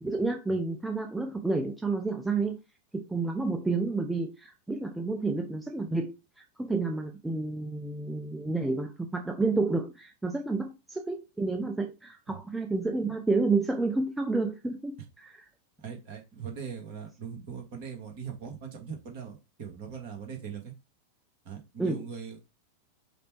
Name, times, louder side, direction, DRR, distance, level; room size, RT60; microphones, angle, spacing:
voice 1, 0.0-2.6 2.9-6.1 6.6-15.0 21.8-22.0, right 3 dB, 5° right, 0.6 m, -30 dB
voice 2, 15.8-20.7 21.4-22.4, right 7 dB, 45° right, 1.5 m, -40 dB
5.1 x 2.3 x 4.4 m
figure-of-eight pair, 90°, 0 cm